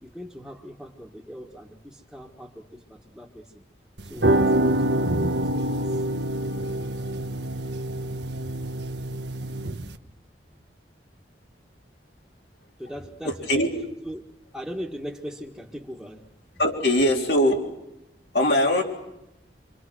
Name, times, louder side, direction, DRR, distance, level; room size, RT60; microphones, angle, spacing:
voice 1, 0.0-3.6 4.0-6.1 8.4-8.5 12.8-13.6 14.0-14.2 14.5-16.3, equal, ahead, -6 dB, 1.6 m, -40 dB
sound 1, 4.0-10.0, right 1 dB, 85° right, 1.2 m, -26 dB
voice 2, 13.2-13.7 16.6-17.6 18.3-18.8, left 1 dB, 75° left, 1 dB, 3.7 m, -21 dB
26.5 x 26.0 x 6.3 m, 0.87 s
head